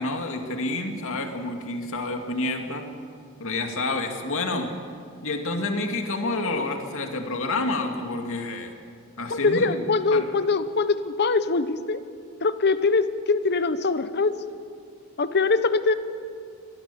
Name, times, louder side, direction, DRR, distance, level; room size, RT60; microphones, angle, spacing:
voice 1, 0.0-2.9 3.4-4.7 5.2-8.7 9.2-9.8 10.1-10.3, left 2 dB, 65° left, 4 dB, 2.4 m, -28 dB
voice 2, 9.3-12.0 12.4-14.3 15.2-15.9, left 4 dB, 50° left, 12 dB, 1.0 m, -23 dB
25.0 x 18.5 x 7.0 m, 2.3 s
head